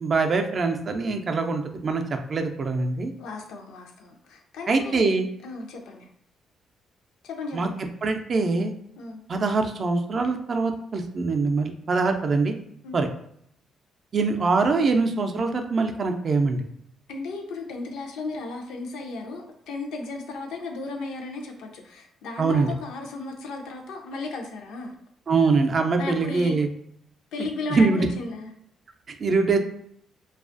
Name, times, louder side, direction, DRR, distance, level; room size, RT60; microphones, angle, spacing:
voice 1, 0.0-3.1 4.7-5.3 7.5-7.7 8.0-8.7 9.3-12.5 12.9-13.1 14.1-16.6 22.4-22.7 25.3-26.7 27.7-28.1 29.2-29.6, right 4 dB, 45° right, 5 dB, 0.4 m, -23 dB
voice 2, 3.2-6.1 7.2-7.8 9.0-9.2 12.8-13.0 17.1-24.9 25.9-26.6 27.3-28.5, left 3 dB, 85° left, 2 dB, 0.5 m, -35 dB
2.4 x 2.3 x 2.5 m, 0.69 s
cardioid pair, 90°, 0 cm